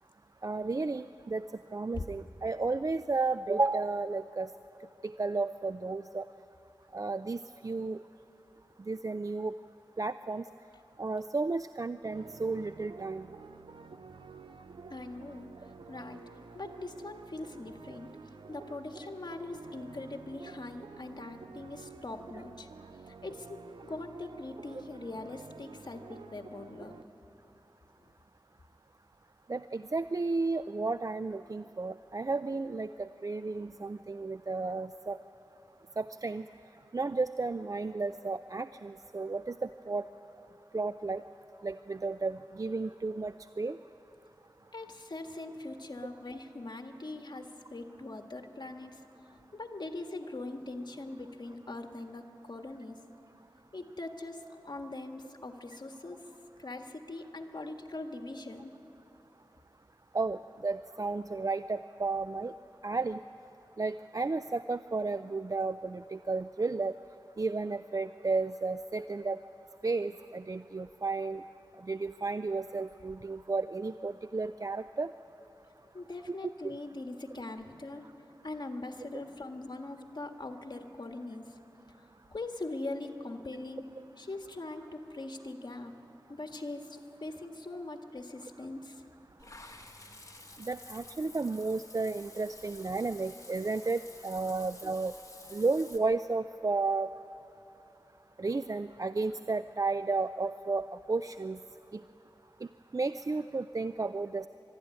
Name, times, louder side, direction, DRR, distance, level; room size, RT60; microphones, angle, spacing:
voice 1, 0.4-1.4 1.7-4.5 5.0-6.3 6.9-8.0 8.9-9.5 10.0-10.4 11.0-13.3 29.5-35.2 36.0-36.4 36.9-40.0 40.7-41.2 41.6-43.8 60.1-62.5 62.8-63.2 63.8-66.9 67.4-69.4 69.8-71.4 71.9-75.1 76.6-76.8 90.6-95.1 95.5-97.1 98.4-101.6 101.9-102.0 102.9-104.5, right 3 dB, 45° right, 12 dB, 0.4 m, -33 dB
sound 1, 12.0-27.0, right 4 dB, 90° right, 0.6 m, -50 dB
voice 2, 14.9-15.5 15.9-16.2 16.5-18.1 18.5-22.7 23.1-27.0 44.7-49.0 49.3-53.0 53.7-56.2 56.6-58.7 75.9-78.0 78.4-81.5 82.3-83.9 84.2-85.9 86.3-89.0, left 2 dB, 60° left, 5 dB, 1.6 m, -41 dB
Water / Bathtub (filling or washing), 89.4-96.0, left 2 dB, 40° left, 1.9 m, -51 dB
23.5 x 13.0 x 9.7 m, 3.0 s
wide cardioid pair, 45°, 8 cm